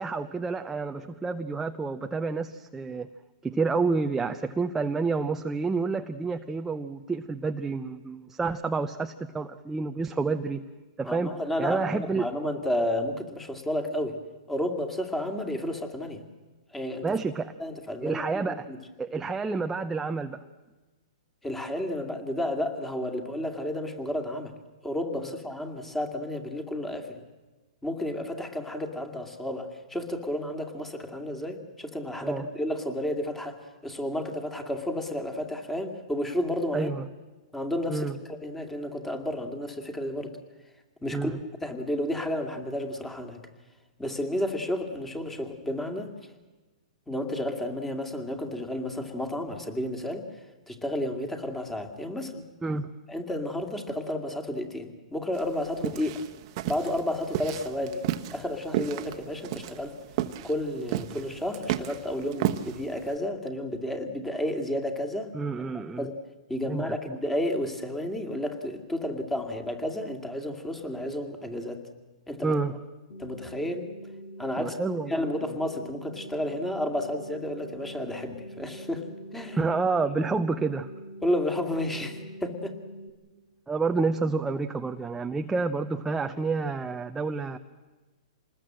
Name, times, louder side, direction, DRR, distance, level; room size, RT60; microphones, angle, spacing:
voice 1, 0.0-3.1 3.4-10.6 11.0-11.3 11.6-12.3 17.0-17.5 18.0-18.7 19.0-20.4 25.2-25.3 32.2-32.4 36.7-37.0 37.9-38.1 41.1-41.4 52.6-52.9 65.3-66.1 66.7-66.8 72.4-72.8 74.6-75.2 79.5-80.9 83.7-87.6, right 4 dB, 10° right, 7 dB, 0.7 m, -29 dB
voice 2, 11.0-14.2 14.5-16.2 16.7-17.2 17.6-18.8 21.4-24.5 24.8-27.2 27.8-36.9 37.5-40.4 41.0-41.3 41.6-43.4 44.0-46.1 47.1-50.3 50.7-52.5 53.1-56.2 56.7-58.0 58.3-60.0 60.4-65.3 66.0-66.2 66.5-71.8 72.3-72.6 73.2-73.9 74.4-74.8 75.1-79.6 81.2-82.8, left 1 dB, 5° left, 5 dB, 2.3 m, -31 dB
sound 1, 55.3-63.1, right 13 dB, 45° right, 1.2 m, -33 dB
sound 2, 73.1-83.1, right 1 dB, 65° left, 4.6 m, -44 dB
26.5 x 20.0 x 7.7 m, 1.2 s
hypercardioid pair, 135°, 4 cm